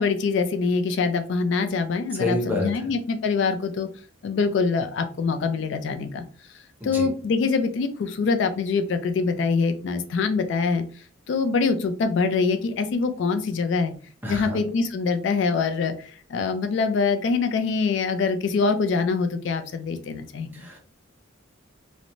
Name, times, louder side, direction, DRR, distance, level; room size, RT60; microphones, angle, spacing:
voice 1, 0.0-3.9 4.2-6.2 6.8-10.8 11.3-13.9 14.3-15.9 16.3-20.7, left 4 dB, 60° left, 7 dB, 0.3 m, -24 dB
voice 2, 2.1-2.9 6.8-7.1 14.2-14.6 20.5-20.8, left 2 dB, 10° right, 0 dB, 0.6 m, -28 dB
2.9 x 2.1 x 2.5 m, 0.41 s
head